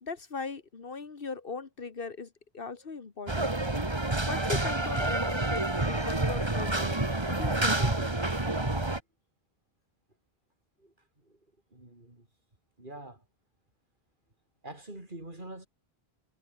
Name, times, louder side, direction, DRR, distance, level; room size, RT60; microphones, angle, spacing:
voice 1, 0.0-3.5 4.3-8.1, left 4 dB, 60° left, 1.6 m, -39 dB
sound 1, 3.3-9.0, right 2 dB, 25° right, 2.0 m, -28 dB
voice 2, 10.8-11.4 11.7-12.3 12.8-13.3 14.6-15.7, right 1 dB, 50° right, 5.0 m, -46 dB
omnidirectional pair, 1.1 m